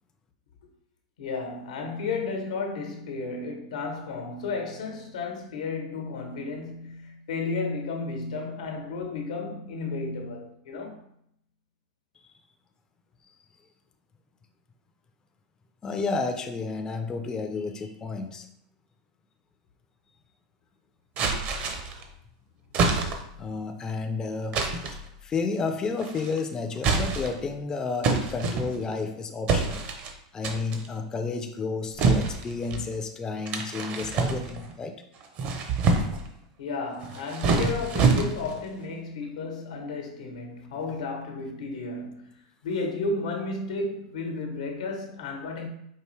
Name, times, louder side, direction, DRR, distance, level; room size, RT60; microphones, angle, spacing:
voice 1, 1.2-11.0 36.6-42.3 42.6-45.7, left 3 dB, 85° left, 1.0 m, -33 dB
voice 2, 15.8-18.5 23.4-24.6 25.2-29.8 30.3-35.0, left 4 dB, 20° left, 0.4 m, -31 dB
sound 1, 21.2-22.0 22.7-23.4 24.5-25.0 26.0-26.4 26.8-27.5 28.0-29.0 29.5-30.1 30.4-30.9 32.0-32.9 33.5-34.7 35.2-36.3 37.0-38.6, right 4 dB, 45° right, 0.6 m, -26 dB
4.6 x 2.6 x 3.1 m
hypercardioid pair, 120°, 3 cm